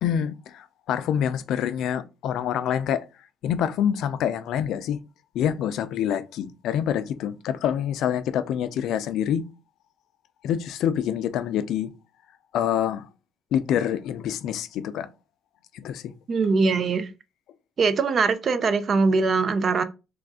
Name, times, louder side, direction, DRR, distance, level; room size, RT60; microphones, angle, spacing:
voice 1, 0.0-3.0 3.4-5.0 5.3-9.4 10.4-11.9 12.5-13.1 13.5-15.1 15.7-16.1, left 9 dB, 75° left, 0.4 m, -26 dB
voice 2, 16.3-17.1 17.8-19.8, right 4 dB, 45° right, 0.5 m, -22 dB
3.1 x 2.5 x 3.5 m
cardioid pair, 95°, 0 cm